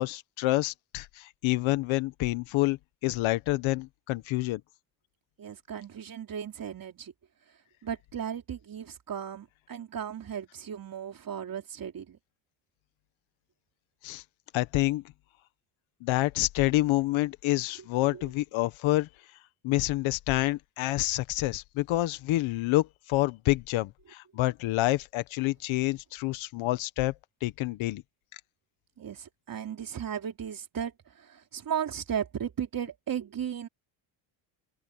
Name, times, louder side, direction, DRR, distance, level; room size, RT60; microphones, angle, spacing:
voice 1, 0.0-4.6 14.0-14.2 14.5-15.0 16.0-19.1 19.6-27.1 27.4-28.0, left 18 dB, 85° left, 1.4 m, -28 dB
voice 2, 5.4-7.1 7.8-12.2 18.0-18.3 29.0-33.7, right 8 dB, 45° right, 3.6 m, -36 dB
open air
cardioid pair, 95°, 46 cm